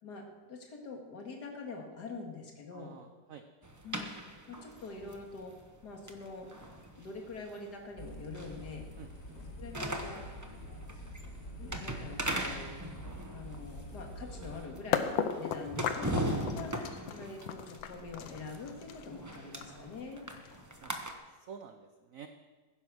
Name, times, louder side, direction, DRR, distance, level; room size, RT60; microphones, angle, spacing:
voice 1, 0.0-2.9 3.8-4.1 4.5-5.5 5.8-6.5 7.0-8.9 9.6-10.2 11.6-12.7 13.3-20.3, left 3 dB, 60° left, 2 dB, 2.5 m, -45 dB
voice 2, 2.7-3.5 8.9-9.1 20.8-20.9 21.3-22.3, right 7 dB, 60° right, 7 dB, 1.0 m, -49 dB
sound 1, 3.6-21.1, right 1 dB, 15° right, 0.7 m, -40 dB
sound 2, 8.0-14.7, equal, 35° left, 2.0 m, -46 dB
sound 3, 14.9-20.8, left 8 dB, 85° left, 1.6 m, -36 dB
15.5 x 10.0 x 6.2 m, 1.3 s
omnidirectional pair, 2.0 m